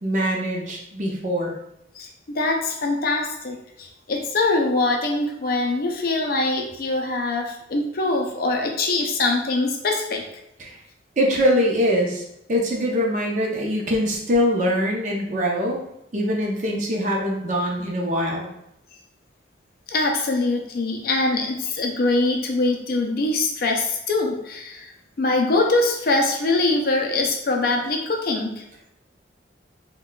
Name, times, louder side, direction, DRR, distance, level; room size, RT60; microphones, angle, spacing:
voice 1, 0.0-1.5 10.6-10.7 11.2-12.2 12.5-15.8 16.1-18.5, equal, 40° right, -1 dB, 0.5 m, -23 dB
voice 2, 2.0-10.3 19.9-24.9 25.2-28.5, left 2 dB, 50° left, 2 dB, 0.4 m, -23 dB
3.8 x 2.2 x 2.2 m, 0.82 s
head